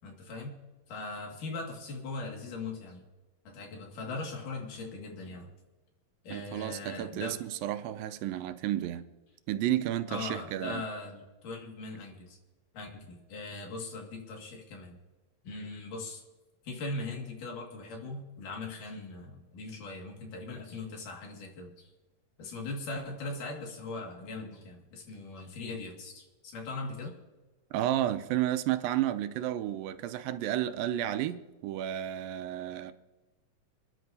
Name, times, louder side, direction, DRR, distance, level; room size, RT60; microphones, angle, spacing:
voice 1, 0.0-0.6 0.9-3.0 3.5-5.5 6.2-7.4 10.1-12.4 12.7-15.0 15.4-16.2 16.7-21.9 22.4-27.1, left 3 dB, 70° left, 3.5 m, -40 dB
voice 2, 6.3-9.1 9.5-10.8 27.7-32.9, right 12 dB, 90° right, 2.4 m, -32 dB
27.0 x 11.0 x 2.7 m
omnidirectional pair, 4.0 m